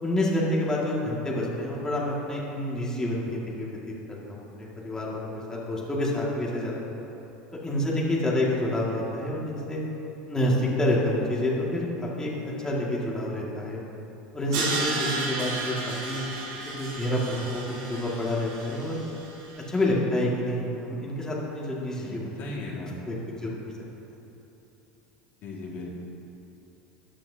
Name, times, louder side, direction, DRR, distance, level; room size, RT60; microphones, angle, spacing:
voice 1, 0.0-3.7 4.1-6.7 7.6-9.8 10.3-13.8 14.3-16.2 16.8-19.0 19.7-22.4 23.0-23.1 23.4-23.6, left 1 dB, 15° left, -5 dB, 2.0 m, -28 dB
Crash cymbal, 14.5-19.6, right 3 dB, 75° right, 2.2 m, -33 dB
voice 2, 21.9-23.0 25.4-25.9, left 2 dB, 55° left, -4 dB, 2.0 m, -37 dB
13.5 x 8.9 x 2.8 m, 3.0 s
supercardioid pair, 100°, 4 cm